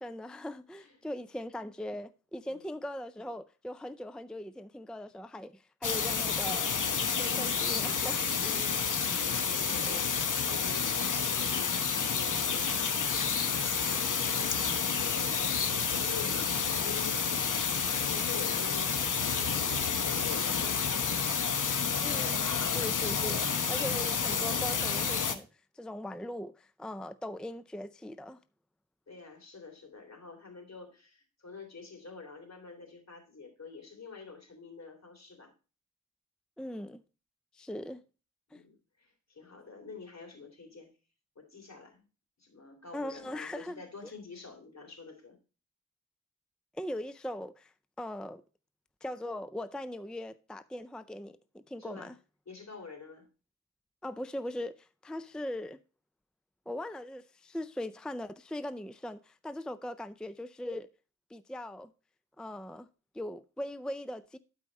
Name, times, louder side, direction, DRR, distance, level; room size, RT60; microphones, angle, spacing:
voice 1, 0.0-6.7 7.1-8.6 9.9-10.0 22.0-25.5 25.7-28.4 36.6-37.0 37.5-38.0 38.5-38.6 42.9-44.1 46.7-48.4 49.0-52.1 54.0-55.8 56.7-60.9 61.3-61.9 62.4-62.9 63.1-64.4, left 1 dB, 5° left, 0.4 m, -40 dB
sound 1, 5.8-25.4, left 6 dB, 80° left, 1.0 m, -30 dB
voice 2, 8.3-17.6 18.1-21.1 29.1-35.5 38.5-40.9 41.3-42.1 42.4-45.4 51.8-52.1 52.5-53.3, left 4 dB, 60° left, 3.3 m, -47 dB
12.0 x 4.8 x 4.1 m
wide cardioid pair, 75°, 31 cm